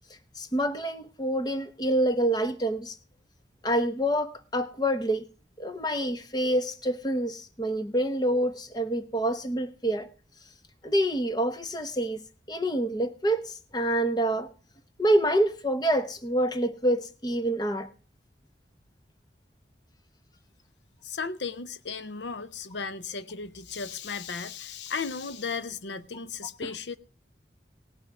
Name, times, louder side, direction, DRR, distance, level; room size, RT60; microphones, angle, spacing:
voice 1, 0.3-3.0 3.6-5.3 5.6-10.1 10.8-12.2 12.5-14.5 15.0-17.9 26.6-26.7, right 1 dB, 25° left, 1.1 m, -27 dB
voice 2, 21.0-27.0, left 5 dB, 85° left, 0.7 m, -35 dB
18.5 x 6.4 x 6.0 m
head